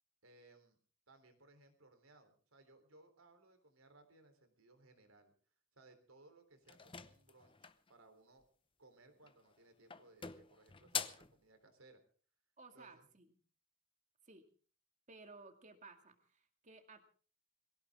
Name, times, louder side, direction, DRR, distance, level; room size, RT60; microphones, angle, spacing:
voice 1, 0.2-0.8 1.1-5.3 5.7-8.4 8.8-12.0 12.7-13.1, right 2 dB, 85° right, 8 dB, 3.7 m, -64 dB
sound 1, 6.7-7.9 9.2-9.6 9.9-11.3, left 7 dB, 25° left, 0.8 m, -44 dB
voice 2, 12.6-13.3 14.2-14.5 15.1-17.0, right 3 dB, 35° right, 6 dB, 2.3 m, -57 dB
22.5 x 16.5 x 3.7 m, 0.41 s
head